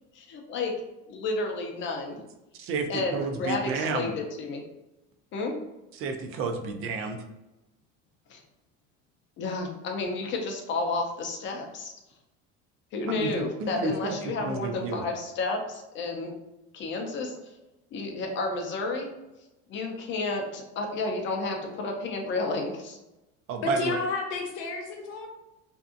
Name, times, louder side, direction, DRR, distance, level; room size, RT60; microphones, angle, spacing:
voice 1, 0.1-0.7 1.1-2.2 2.9-4.6 5.3-5.6 8.3-8.4 9.4-11.9 12.9-16.3 16.7-17.3 17.9-19.1 19.7-23.0, left 3 dB, 40° left, 2 dB, 0.5 m, -31 dB
voice 2, 2.6-4.1 6.0-7.2 13.1-14.2 14.4-15.0 23.5-24.0, right 3 dB, 45° right, 5 dB, 0.4 m, -30 dB
voice 3, 23.6-25.3, left 3 dB, 80° left, 2 dB, 0.8 m, -31 dB
2.6 x 2.3 x 2.4 m, 0.98 s
cardioid pair, 140°, 32 cm